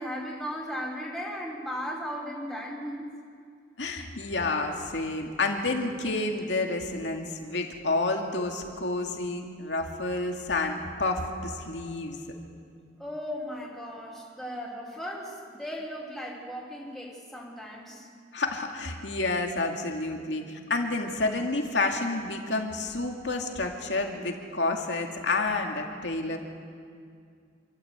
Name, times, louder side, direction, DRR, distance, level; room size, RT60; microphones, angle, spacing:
voice 1, 0.0-3.1 13.0-18.1, equal, ahead, -5 dB, 3.6 m, -36 dB
voice 2, 3.8-12.2 18.3-26.4, left 2 dB, 90° left, 2 dB, 2.3 m, -29 dB
27.0 x 13.5 x 8.1 m, 2.3 s
head